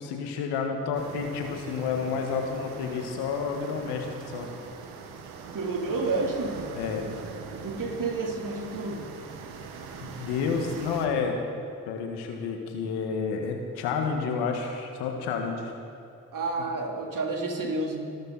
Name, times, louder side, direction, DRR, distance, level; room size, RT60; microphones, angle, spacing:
voice 1, 0.0-4.5 6.8-7.1 10.0-11.4 11.9-15.7, left 5 dB, 85° left, 3 dB, 1.8 m, -30 dB
sound 1, 0.9-11.1, right 5 dB, 80° right, 1.5 m, -42 dB
voice 2, 5.5-6.6 7.6-9.0 16.3-18.0, right 3 dB, 55° right, 0 dB, 3.6 m, -30 dB
25.5 x 13.0 x 4.2 m, 2.7 s
hypercardioid pair, 45°, 39 cm